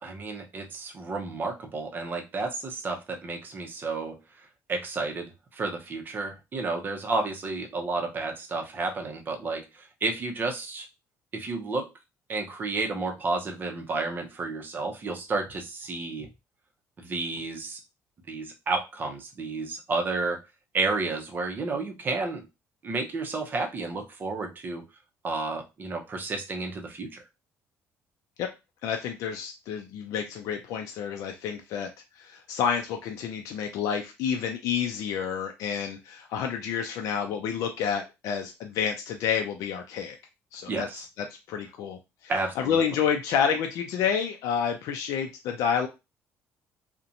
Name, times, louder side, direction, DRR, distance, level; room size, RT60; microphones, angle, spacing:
voice 1, 0.0-4.2 4.7-10.9 11.3-11.9 12.3-16.3 17.0-17.8 18.3-20.4 20.7-22.5 22.8-24.8 25.2-27.2 40.7-41.0 42.3-42.8, right 3 dB, 35° right, 3 dB, 0.6 m, -31 dB
voice 2, 28.8-31.9 32.2-40.2 40.5-45.9, left 7 dB, 75° left, 4 dB, 0.4 m, -29 dB
2.5 x 2.1 x 2.7 m, 0.25 s
cardioid pair, 120°, 6 cm